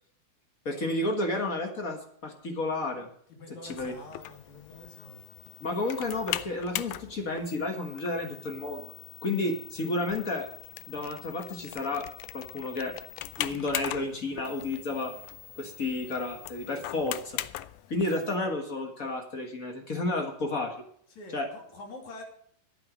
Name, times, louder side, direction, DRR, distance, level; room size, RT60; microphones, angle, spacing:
voice 1, 0.6-3.1 3.6-3.9 5.6-8.9 9.2-10.5 10.9-12.0 12.3-13.0 13.4-15.1 15.6-17.4 17.9-20.9 21.3-21.5, left 2 dB, 40° left, 4 dB, 1.2 m, -31 dB
voice 2, 3.4-5.3 21.1-22.2, left 2 dB, 60° left, 2 dB, 4.0 m, -46 dB
sound 1, 3.7-18.4, left 15 dB, 80° left, 1.9 m, -40 dB
11.5 x 9.1 x 6.3 m, 0.62 s
omnidirectional pair, 3.8 m